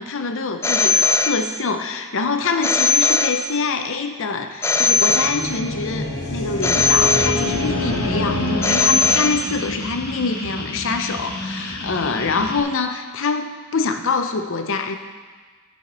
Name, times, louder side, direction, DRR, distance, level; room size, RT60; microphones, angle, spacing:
voice 1, 0.0-15.0, left 4 dB, 60° left, 7 dB, 0.7 m, -25 dB
Telephone, 0.6-1.9 2.6-3.9 4.6-5.9 6.6-7.9 8.6-9.9, left 4 dB, 10° left, 0.4 m, -20 dB
sound 1, 4.8-9.4, left 2 dB, 80° left, 1.6 m, -25 dB
sound 2, 6.8-12.6, left 1 dB, 45° left, 1.4 m, -31 dB
13.5 x 5.7 x 4.3 m, 1.4 s
head